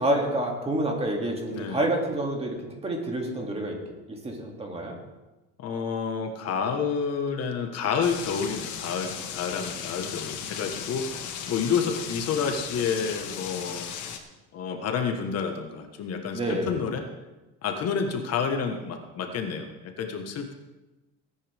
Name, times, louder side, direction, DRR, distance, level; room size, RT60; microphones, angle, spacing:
voice 1, 0.0-2.6 2.8-3.8 4.1-5.0 10.4-10.5 16.3-16.7, right 1 dB, 20° right, 0 dB, 2.6 m, -28 dB
voice 2, 1.5-1.8 5.6-13.9 14.5-16.4 16.7-17.0 17.6-20.5, left 6 dB, 50° left, 5 dB, 1.5 m, -29 dB
sound 1, 8.0-14.2, left 8 dB, 70° left, 1.6 m, -36 dB
19.5 x 9.8 x 3.6 m, 1.1 s
cardioid pair, 130°, 31 cm